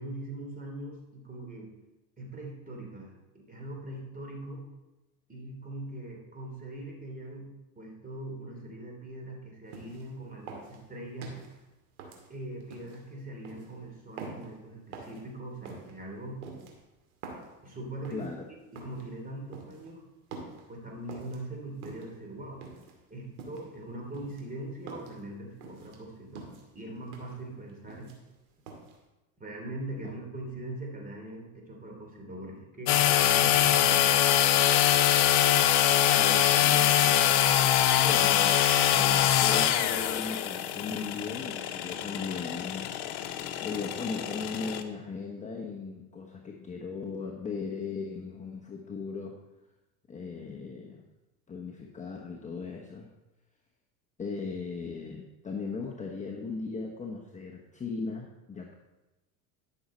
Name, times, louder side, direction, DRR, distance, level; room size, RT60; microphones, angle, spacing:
voice 1, 0.0-1.7 2.2-4.6 5.3-7.4 7.7-11.5 12.3-16.4 17.6-18.2 18.7-20.0 20.7-22.7 23.1-28.1 29.4-34.3, right 1 dB, 20° right, 0 dB, 3.2 m, -41 dB
sound 1, 9.7-10.1 10.5-11.5 12.0-13.0 13.4-13.7 14.2-14.5 14.9-15.2 15.7-15.9 16.4-17.5 18.0-18.3 18.8-19.1 19.5-19.9 20.3-20.6 21.1-21.4 21.8-22.2 22.6-23.0 23.4-23.7 24.1-25.2 25.6-26.0 26.4-26.7 27.1-27.4 27.7-28.4 28.7-29.0, right 4 dB, 75° right, 2.3 m, -45 dB
sound 2, 32.9-44.8, left 11 dB, 60° left, 1.0 m, -24 dB
voice 2, 36.1-37.4 38.0-38.6 38.9-43.0 43.6-49.3 50.1-51.0 51.5-53.1 54.2-58.7, left 4 dB, 15° left, -1 dB, 1.1 m, -37 dB
11.5 x 6.5 x 4.4 m, 1.0 s
hypercardioid pair, 100°, 43 cm